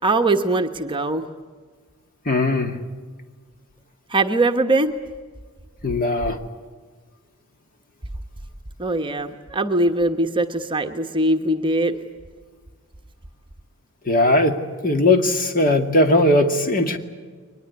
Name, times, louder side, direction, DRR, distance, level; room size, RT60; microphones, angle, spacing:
voice 1, 0.0-1.3 4.1-4.9 8.8-12.0, right 2 dB, 20° right, 6 dB, 1.2 m, -21 dB
voice 2, 2.3-2.8 5.8-6.4 14.1-14.6 14.8-17.0, left 1 dB, 40° left, 6 dB, 2.3 m, -18 dB
23.5 x 20.5 x 9.6 m, 1.5 s
head